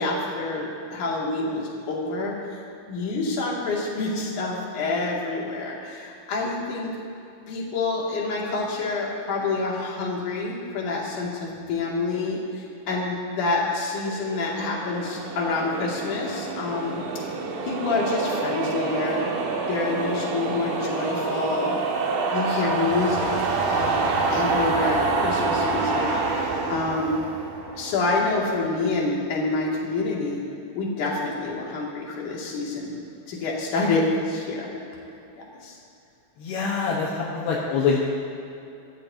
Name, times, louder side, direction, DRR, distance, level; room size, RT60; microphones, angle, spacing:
voice 1, 0.0-2.6 2.9-7.0 7.5-17.0 17.6-19.3 19.7-21.8 22.3-23.3 23.7-27.2 27.7-30.4 30.7-32.9 33.3-34.7 35.4-35.8, left 3 dB, 50° left, -4 dB, 3.7 m, -27 dB
sound 1, 14.1-28.4, right 3 dB, 60° right, 2.5 m, -27 dB
voice 2, 36.4-38.0, left 5 dB, 75° left, -3 dB, 3.2 m, -24 dB
26.0 x 14.5 x 2.9 m, 2.8 s
omnidirectional pair, 4.8 m